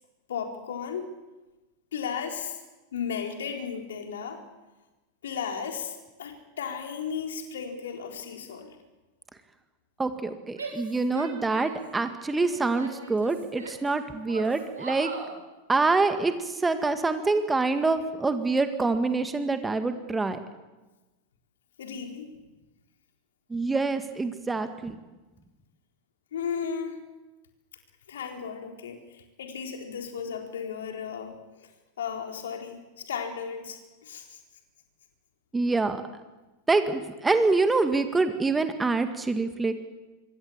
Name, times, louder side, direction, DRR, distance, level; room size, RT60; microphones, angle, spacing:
voice 1, 0.3-1.1 1.9-2.6 2.9-4.4 5.2-8.8 21.8-22.3 26.3-27.0 28.1-31.7 32.0-34.4, left 7 dB, 60° left, 3 dB, 4.1 m, -35 dB
voice 2, 10.0-15.1 15.7-20.4 23.5-25.0 35.5-36.0 36.7-39.7, right 3 dB, 10° right, 8 dB, 1.9 m, -26 dB
Female speech woman speaking / Yell, 10.5-11.9 12.3-13.9 14.3-15.3, right 3 dB, 70° right, 6.7 m, -40 dB
26.0 x 23.5 x 7.4 m, 1.1 s
figure-of-eight pair, 90°, 0 cm